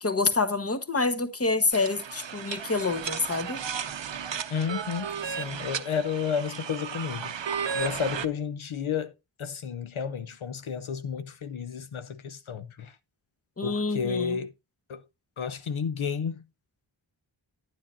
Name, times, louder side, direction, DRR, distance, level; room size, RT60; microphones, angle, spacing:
voice 1, 0.0-3.6 13.6-14.4, left 3 dB, 30° left, 1.0 m, -27 dB
sound 1, 1.7-8.3, right 7 dB, 60° right, 0.7 m, -34 dB
voice 2, 4.5-7.3 7.7-13.0 13.6-14.5 14.9-15.0 15.4-16.4, left 7 dB, 75° left, 0.7 m, -32 dB
10.0 x 9.8 x 2.5 m
wide cardioid pair, 50°, 48 cm